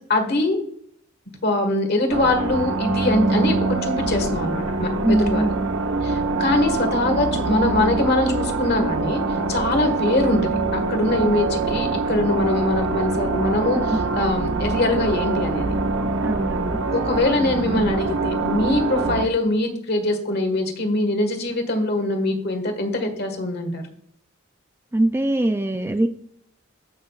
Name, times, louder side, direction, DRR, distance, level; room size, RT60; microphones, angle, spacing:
voice 1, 0.1-0.6 1.4-5.5 6.0-9.2 9.5-15.7 16.9-23.8, left 2 dB, 50° left, 5 dB, 1.6 m, -23 dB
sound 1, 2.1-19.3, right 3 dB, 75° right, 0.8 m, -24 dB
voice 2, 5.0-5.7 16.2-16.8 24.9-26.1, right 1 dB, 10° right, 8 dB, 0.3 m, -22 dB
15.0 x 6.1 x 2.4 m, 0.65 s
head